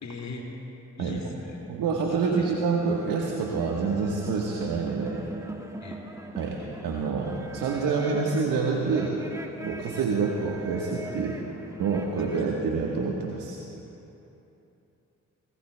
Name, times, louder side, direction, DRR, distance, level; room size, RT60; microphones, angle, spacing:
voice 1, 0.0-0.4 1.0-1.6 2.4-2.5 5.8-6.0, left 3 dB, 50° left, 0 dB, 2.2 m, -39 dB
voice 2, 1.7-5.2 6.4-6.6 6.8-9.2 9.6-11.4 11.8-13.6, right 5 dB, 70° right, -1 dB, 1.3 m, -27 dB
sound 1, 2.7-12.5, right 1 dB, 10° right, 1.5 m, -41 dB
19.5 x 18.0 x 2.2 m, 3.0 s
hypercardioid pair, 50°, 34 cm